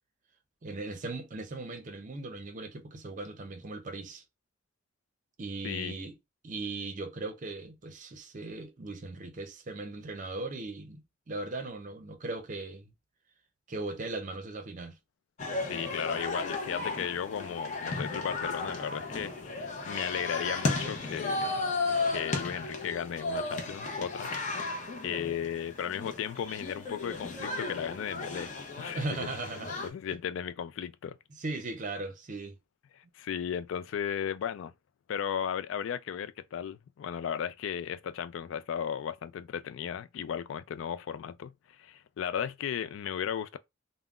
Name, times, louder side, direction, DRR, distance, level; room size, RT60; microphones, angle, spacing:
voice 1, 0.6-4.2 5.4-6.1 6.4-12.9 13.7-15.0 28.9-29.8 31.4-32.6, right 2 dB, 40° right, 0.5 m, -38 dB
voice 2, 5.6-6.0 15.6-21.6 22.1-24.6 25.0-29.3 29.8-31.2 33.0-34.7 35.1-43.6, left 8 dB, 75° left, 0.3 m, -35 dB
sound 1, 15.4-29.9, left 3 dB, 40° left, 0.6 m, -34 dB
3.6 x 2.0 x 2.3 m
head